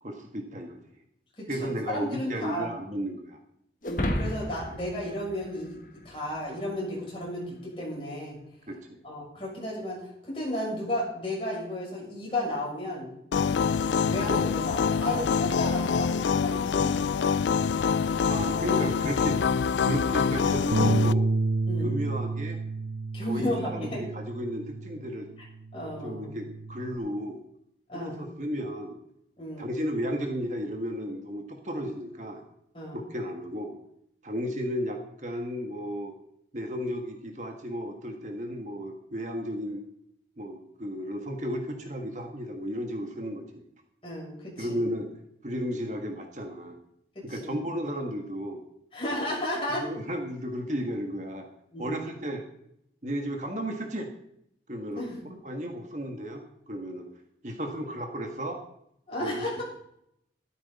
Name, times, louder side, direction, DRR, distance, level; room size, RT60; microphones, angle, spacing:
voice 1, 0.0-0.8 1.5-3.4 8.7-9.0 18.3-19.4 19.8-21.3 21.8-22.6 23.3-25.3 26.0-27.4 27.9-29.0 29.6-32.4 32.9-33.8 34.2-36.1 36.5-39.8 40.4-43.6 44.6-45.1 45.4-46.8 47.2-48.6 49.8-51.5 51.8-52.4 53.0-54.1 54.7-55.0 55.4-57.1 57.4-58.6 59.2-59.6, equal, 40° right, 3 dB, 1.6 m, -34 dB
voice 2, 1.4-2.7 3.9-5.8 6.1-8.4 9.0-13.5 13.8-17.0 21.7-22.0 23.1-24.0 25.7-26.3 27.9-28.3 29.4-29.7 32.7-33.0 44.0-44.8 47.2-47.6 48.9-49.9 51.7-52.1 54.9-55.2 59.1-59.6, left 1 dB, 30° left, -4 dB, 7.1 m, -33 dB
sound 1, 3.8-6.4, left 1 dB, 50° left, 1.7 m, -32 dB
sound 2, 13.3-21.1, left 6 dB, 90° left, 0.4 m, -25 dB
Bass guitar, 20.7-25.2 25.6-27.0, right 2 dB, 75° right, 0.8 m, -30 dB
13.5 x 13.0 x 4.2 m, 0.75 s
head